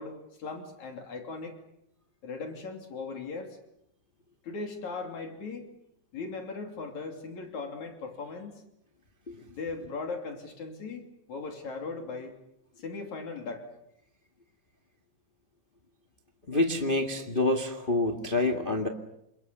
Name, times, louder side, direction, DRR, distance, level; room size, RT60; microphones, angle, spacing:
voice 1, 0.0-1.6 2.2-3.6 4.4-5.7 6.1-8.6 9.5-12.4 12.8-13.7, left 4 dB, 75° left, 3 dB, 4.3 m, -38 dB
voice 2, 16.5-18.9, left 2 dB, 20° left, 3 dB, 1.8 m, -27 dB
29.0 x 27.5 x 6.9 m, 0.81 s
omnidirectional pair, 3.4 m